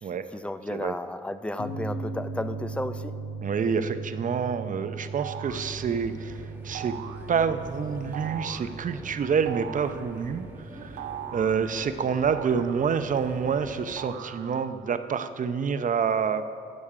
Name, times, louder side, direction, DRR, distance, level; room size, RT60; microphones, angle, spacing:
voice 1, 0.0-3.2, left 1 dB, 5° left, 12 dB, 0.4 m, -33 dB
sound 1, 1.6-14.5, right 3 dB, 75° left, 1.7 m, -40 dB
voice 2, 3.4-7.0 7.3-10.5 10.7-11.0 11.3-16.4, right 6 dB, 40° right, 10 dB, 0.7 m, -27 dB
sound 2, 5.2-5.7 6.7-7.3 8.1-8.7 9.5-10.1 11.0-11.7 12.3-13.2 14.0-14.8, right 10 dB, 80° right, 0.6 m, -39 dB
sound 3, 5.5-14.1, right 1 dB, 10° right, 1.3 m, -45 dB
13.0 x 8.4 x 4.9 m, 2.4 s
cardioid pair, 90°, 20 cm